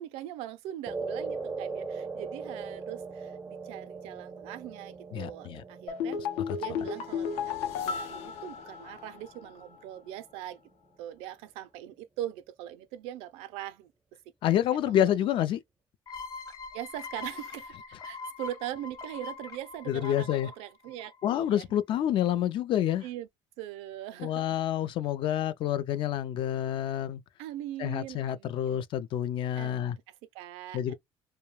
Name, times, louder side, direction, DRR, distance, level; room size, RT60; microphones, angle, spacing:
voice 1, 0.0-6.2 6.6-10.6 11.0-13.9 14.9-15.0 16.7-21.6 23.0-23.3 23.6-24.6 27.4-28.8 29.6-30.9, right 13 dB, 80° right, 0.4 m, -41 dB
sound 1, 0.9-9.4, right 4 dB, 15° right, 0.3 m, -40 dB
voice 2, 5.1-5.6 6.5-6.6 14.4-15.6 19.9-20.5 21.2-23.0 24.2-27.2 27.8-30.0 30.7-30.9, left 11 dB, 55° left, 0.4 m, -28 dB
sound 2, 5.9-9.3 9.6-9.7, left 7 dB, 85° left, 0.7 m, -33 dB
sound 3, 16.1-21.5, left 4 dB, 35° left, 0.9 m, -43 dB
2.3 x 2.1 x 3.0 m
supercardioid pair, 95°, 10 cm